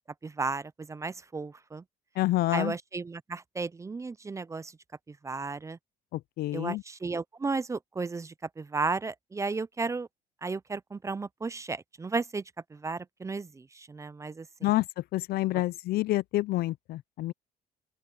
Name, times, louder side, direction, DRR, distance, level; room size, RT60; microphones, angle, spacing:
voice 1, 0.2-1.8 2.5-4.7 5.1-5.8 6.5-10.1 10.4-12.4 12.7-14.7 15.5-15.6, right 4 dB, 20° right, 0.5 m, -34 dB
voice 2, 2.2-2.8 6.1-6.8 14.6-14.9 15.1-17.3, left 17 dB, 65° left, 0.5 m, -28 dB
open air
cardioid pair, 110°, 17 cm